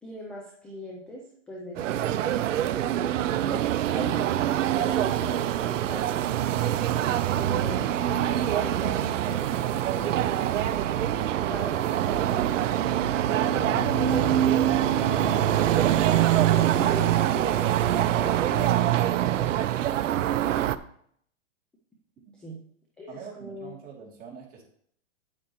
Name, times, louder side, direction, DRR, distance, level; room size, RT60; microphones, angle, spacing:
voice 1, 0.0-2.6 3.4-6.3 7.3-8.2 8.5-10.5 11.5-13.0 14.0-14.7 15.0-17.7 18.2-19.7 22.3-22.6 23.0-23.7, equal, 5° left, -2 dB, 0.3 m, -40 dB
sound 1, 1.8-20.8, right 12 dB, 75° right, 0.6 m, -24 dB
sound 2, 13.5-18.7, left 11 dB, 45° left, 1.2 m, -40 dB
voice 2, 23.1-24.6, right 6 dB, 20° right, -3 dB, 2.8 m, -44 dB
8.9 x 8.5 x 3.0 m, 0.65 s
hypercardioid pair, 140°, 38 cm